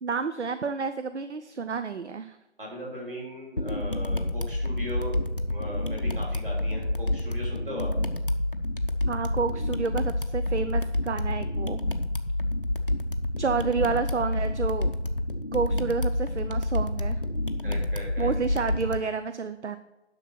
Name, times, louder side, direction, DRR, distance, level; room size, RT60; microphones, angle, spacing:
voice 1, 0.0-2.4 9.1-11.8 13.4-14.9 15.5-17.2 18.2-19.8, right 5 dB, 70° right, 10 dB, 0.6 m, -29 dB
voice 2, 2.6-5.2 5.5-7.9 17.6-18.3, equal, 45° right, -3 dB, 3.6 m, -38 dB
sound 1, 3.6-19.0, left 1 dB, 50° left, 0.7 m, -28 dB
10.5 x 6.2 x 4.4 m, 1.0 s
figure-of-eight pair, 180°, 36 cm